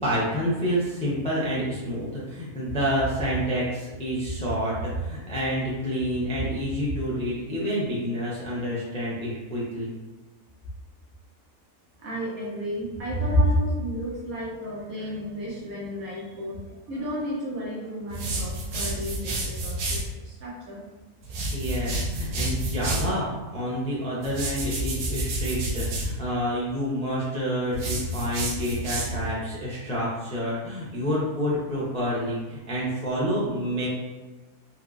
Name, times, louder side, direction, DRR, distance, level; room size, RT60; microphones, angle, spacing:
voice 1, 0.0-9.9 21.5-23.3 23.5-33.9, equal, 10° left, -8 dB, 0.4 m, -28 dB
voice 2, 12.0-20.0 20.2-20.8, equal, 70° right, -5 dB, 1.4 m, -34 dB
sound 1, 18.1-20.1 21.2-23.1 24.2-26.1 27.7-29.3, right 1 dB, 85° right, 1.3 m, -29 dB
3.3 x 2.9 x 2.5 m, 1.2 s
omnidirectional pair, 1.7 m